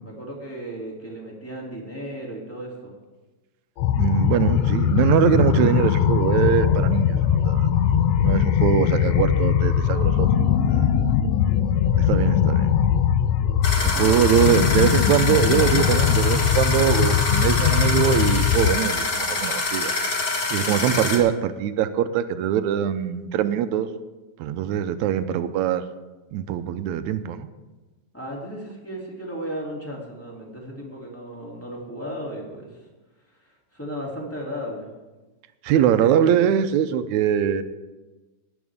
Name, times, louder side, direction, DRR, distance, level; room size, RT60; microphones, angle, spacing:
voice 1, 0.0-2.9 13.9-14.1 28.1-32.8 33.4-34.9, equal, 5° left, -3 dB, 2.6 m, -35 dB
sound 1, 3.8-18.8, left 9 dB, 75° left, 1.7 m, -20 dB
voice 2, 4.0-10.3 10.7-11.0 12.0-12.7 13.8-19.9 20.5-23.9 24.4-25.8 26.3-27.5 35.6-37.6, right 9 dB, 80° right, 11 dB, 2.0 m, -22 dB
sound 2, 13.6-21.2, left 3 dB, 40° left, 1.4 m, -26 dB
17.5 x 10.5 x 3.6 m, 1.2 s
omnidirectional pair, 3.3 m